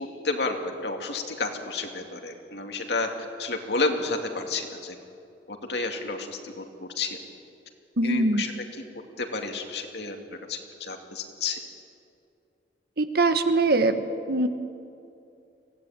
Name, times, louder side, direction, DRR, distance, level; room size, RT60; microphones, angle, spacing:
voice 1, 0.0-5.0 5.5-7.2 8.0-8.6 9.2-10.2 10.5-11.6, left 3 dB, 70° left, 3 dB, 2.5 m, -31 dB
voice 2, 8.0-8.4 13.0-14.0 14.3-14.5, right 2 dB, 60° right, 9 dB, 1.3 m, -22 dB
24.0 x 17.0 x 9.1 m, 2.6 s
head